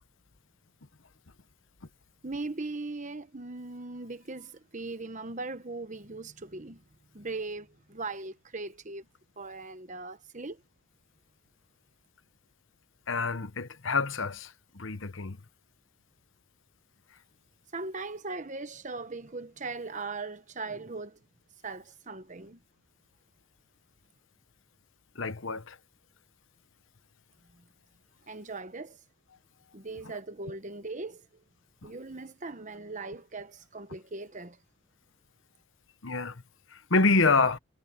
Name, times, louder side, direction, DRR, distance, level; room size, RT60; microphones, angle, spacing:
voice 1, 2.2-6.8 7.1-9.0 9.4-10.6 17.7-21.2 21.6-22.6 28.3-29.0 29.7-31.2 31.8-34.6, right 3 dB, 35° right, 1.1 m, -39 dB
voice 2, 13.1-15.4 25.2-25.7 36.0-36.3 36.9-37.6, left 3 dB, 60° left, 1.1 m, -27 dB
head